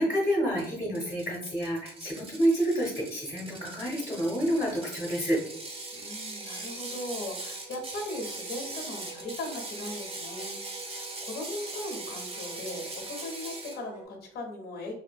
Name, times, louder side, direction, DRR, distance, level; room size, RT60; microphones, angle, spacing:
voice 1, 0.0-5.4, equal, 15° left, -5 dB, 0.7 m, -28 dB
Ratchet pawl, 0.6-13.8, right 2 dB, 30° right, 0.5 m, -41 dB
Wind instrument woodwind instrument, 3.2-14.1, right 3 dB, 85° right, 1.0 m, -50 dB
voice 2, 5.9-15.0, left 1 dB, 55° left, 2 dB, 0.6 m, -39 dB
2.6 x 2.6 x 2.2 m, 0.67 s
cardioid pair, 155°, 20 cm